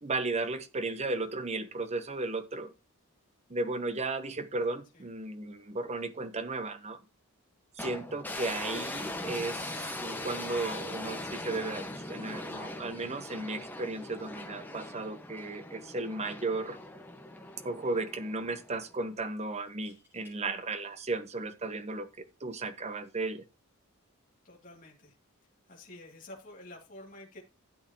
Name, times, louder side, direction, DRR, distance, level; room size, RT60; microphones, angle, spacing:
voice 1, 0.0-2.7 3.5-7.0 7.8-16.8 17.6-23.4, right 3 dB, 30° right, 0.9 m, -35 dB
sound 1, 7.8-19.0, left 1 dB, 10° left, 1.3 m, -40 dB
sound 2, 19.6-20.4 22.2-22.4, left 2 dB, 10° right, 5.7 m, -62 dB
voice 2, 24.4-25.2 25.7-27.4, left 1 dB, 40° left, 2.5 m, -49 dB
12.5 x 8.1 x 2.9 m
head